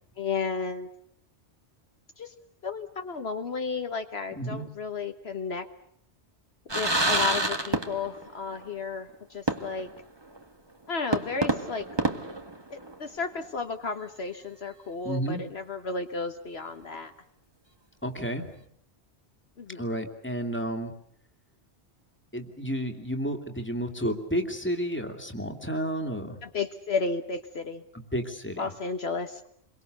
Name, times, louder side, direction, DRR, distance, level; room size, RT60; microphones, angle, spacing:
voice 1, 0.2-0.9 2.2-2.3 2.6-5.6 6.7-9.9 10.9-11.9 12.7-17.1 19.6-19.8 26.4-27.8 28.6-29.4, left 4 dB, 65° left, 7 dB, 1.5 m, -33 dB
sound 1, 6.7-8.3 8.6-8.7 9.5-10.0 10.4-10.5 11.1-13.1, right 2 dB, 20° right, 1.7 m, -28 dB
voice 2, 15.0-15.4 18.0-18.5 19.7-20.9 22.3-26.4 27.9-28.7, equal, 10° left, 4 dB, 2.7 m, -31 dB
28.5 x 23.5 x 6.7 m, 0.70 s
omnidirectional pair, 1.2 m